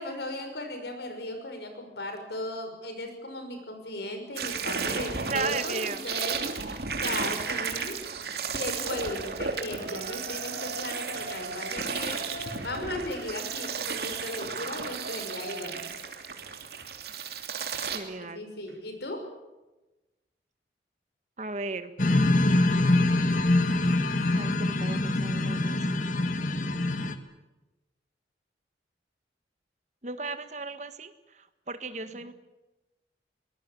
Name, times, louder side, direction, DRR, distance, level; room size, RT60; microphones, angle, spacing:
voice 1, 0.0-8.0 8.5-12.3 12.6-15.9 18.2-19.3 32.0-32.2, left 1 dB, 75° left, 6 dB, 5.8 m, -37 dB
sound 1, 4.4-18.0, right 5 dB, 65° right, 2.8 m, -34 dB
voice 2, 5.3-6.0 17.9-18.5 21.4-21.9 24.3-26.0 30.0-32.3, right 4 dB, 40° right, 10 dB, 1.6 m, -36 dB
Cheering, 9.8-17.5 17.9-18.0 18.7-18.8, right 2 dB, 85° right, 4.1 m, -43 dB
sound 2, 22.0-27.1, left 2 dB, 45° left, 1.7 m, -24 dB
24.0 x 19.5 x 8.5 m, 1.1 s
head